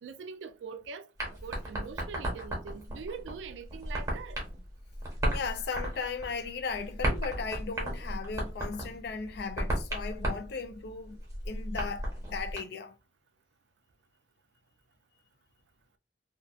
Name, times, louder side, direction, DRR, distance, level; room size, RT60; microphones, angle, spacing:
voice 1, 0.0-1.1 1.4-4.4, right 5 dB, 80° right, 0.4 m, -43 dB
sound 1, 1.2-12.6, right 1 dB, 20° right, 0.9 m, -35 dB
voice 2, 5.3-11.2 11.5-12.9, left 5 dB, 60° left, 0.4 m, -37 dB
2.5 x 2.3 x 2.3 m
head